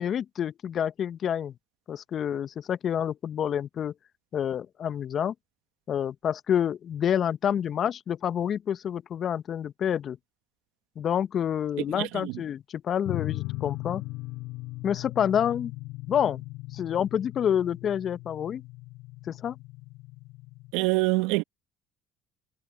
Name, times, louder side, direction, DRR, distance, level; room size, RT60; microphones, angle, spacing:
voice 1, 0.0-1.5 1.9-3.9 4.3-5.3 5.9-10.2 11.0-14.0 14.8-15.7 16.1-16.4 16.7-18.6 19.3-19.6, left 9 dB, 50° left, 1.2 m, -28 dB
voice 2, 11.9-12.3 20.7-21.4, right 23 dB, 75° right, 1.5 m, -25 dB
sound 1, 13.1-20.7, left 22 dB, 70° left, 5.8 m, -38 dB
hypercardioid pair, 65°, 0 cm